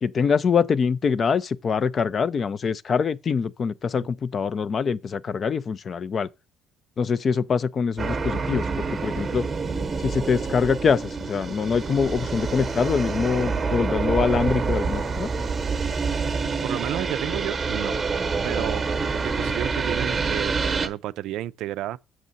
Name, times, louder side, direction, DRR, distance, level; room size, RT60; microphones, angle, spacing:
voice 1, 0.0-6.3 7.0-9.5 10.0-15.3, left 6 dB, 35° left, 0.3 m, -24 dB
sound 1, 8.0-20.9, right 4 dB, 20° right, 0.9 m, -27 dB
voice 2, 16.6-18.0 18.4-18.8 19.1-22.0, right 14 dB, 70° right, 0.3 m, -31 dB
7.4 x 6.2 x 4.0 m
cardioid pair, 140°, 0 cm